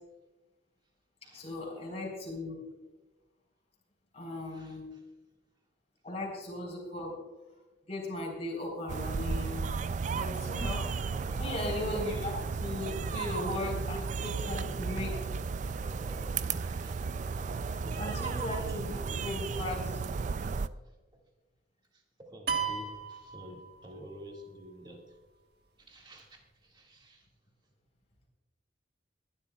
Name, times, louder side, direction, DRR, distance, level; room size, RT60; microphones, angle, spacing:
voice 1, 1.3-2.7 4.1-4.9 6.0-7.2 7.9-9.7 10.0-10.9 11.4-15.1 18.0-20.0, left 2 dB, 35° left, -1 dB, 4.0 m, -37 dB
voice 2, 4.4-5.0 11.1-12.5 12.8-14.1 14.4-15.2 15.6-19.3 20.4-20.5 20.9-21.0 21.9-25.2 25.8-27.3 27.6-27.7, equal, 25° right, 0 dB, 1.9 m, -51 dB
sound 1, 8.9-20.7, right 5 dB, 40° right, 0.3 m, -34 dB
sound 2, 22.5-24.2, right 6 dB, 55° right, 1.5 m, -34 dB
23.0 x 11.5 x 2.3 m, 1.1 s
head